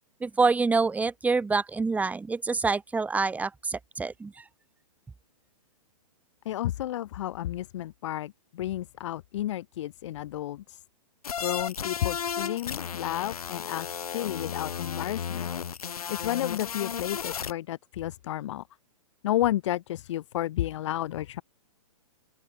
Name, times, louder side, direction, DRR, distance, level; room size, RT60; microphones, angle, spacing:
voice 1, 0.2-4.4, right 4 dB, 10° right, 1.7 m, -26 dB
voice 2, 6.5-10.8 11.4-15.5 15.8-18.6 19.2-21.4, left 13 dB, 50° left, 1.8 m, -32 dB
sound 1, 11.2-17.5, left 7 dB, 75° left, 0.9 m, -34 dB
open air
figure-of-eight pair, 115°, 19 cm